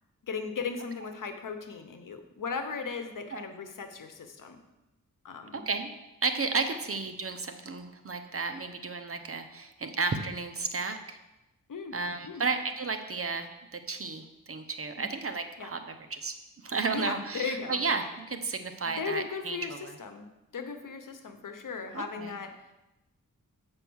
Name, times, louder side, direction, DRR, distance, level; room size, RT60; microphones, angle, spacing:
voice 1, 0.2-4.6 5.2-5.6 11.7-12.0 12.2-12.4 15.0-15.1 15.6-15.7 16.9-17.8 18.9-20.3 20.5-22.7, left 5 dB, 70° left, 7 dB, 1.0 m, -37 dB
voice 2, 5.5-5.9 6.2-11.2 11.9-15.8 16.1-16.3 16.6-19.9 21.9-22.3, right 4 dB, 45° right, 7 dB, 0.9 m, -33 dB
8.2 x 5.3 x 6.3 m, 0.98 s
wide cardioid pair, 95°, 33 cm